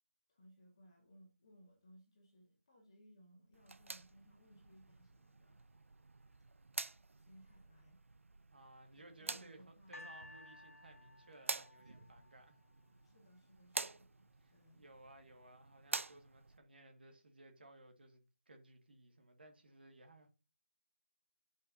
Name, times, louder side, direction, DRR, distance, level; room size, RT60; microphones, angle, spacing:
voice 1, 0.3-5.7 7.2-8.0 8.9-10.1 12.0-12.1 13.0-14.1 14.5-14.9, equal, 20° left, 1.8 m, -64 dB
sound 1, 3.5-16.6, right 3 dB, 70° right, 0.6 m, -48 dB
voice 2, 8.5-12.6 14.4-20.3, right 2 dB, 45° right, 2.0 m, -60 dB
sound 2, 9.9-13.1 13.9-14.0, left 2 dB, 85° left, 1.0 m, -57 dB
11.0 x 5.5 x 2.8 m
figure-of-eight pair, 175°, 7 cm